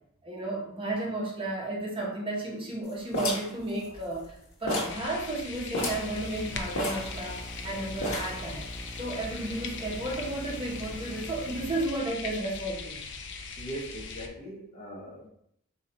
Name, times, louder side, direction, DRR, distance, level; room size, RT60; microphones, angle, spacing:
voice 1, 0.2-8.6 9.0-13.0, right 2 dB, 25° right, -2 dB, 1.0 m, -33 dB
sound 1, 3.1-4.3 4.7-5.0 5.3-5.4 5.7-6.1 6.8-7.6 8.0-8.5, left 2 dB, 80° left, 1.3 m, -32 dB
sound 2, 4.9-14.3, left 4 dB, 60° left, 0.5 m, -40 dB
sound 3, 5.8-11.9, equal, 5° right, 0.6 m, -43 dB
voice 2, 13.6-15.3, right 1 dB, 35° left, -1 dB, 0.9 m, -40 dB
3.9 x 2.9 x 4.1 m, 0.70 s
head